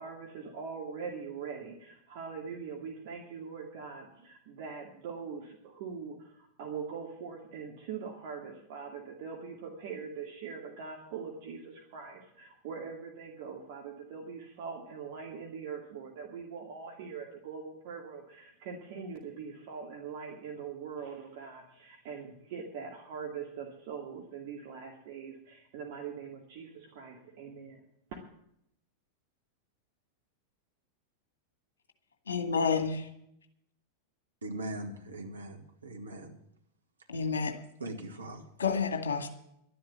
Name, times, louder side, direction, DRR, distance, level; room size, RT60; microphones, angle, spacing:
voice 1, 0.0-27.8 28.1-28.2, right 6 dB, 50° right, 0 dB, 2.4 m, -42 dB
voice 2, 32.3-33.1 37.1-37.6 38.6-39.3, left 5 dB, 65° left, 7 dB, 2.1 m, -29 dB
voice 3, 34.4-36.4 37.8-38.4, right 1 dB, 75° right, 4 dB, 2.1 m, -40 dB
12.0 x 10.5 x 7.2 m, 0.74 s
figure-of-eight pair, 90°, 0 cm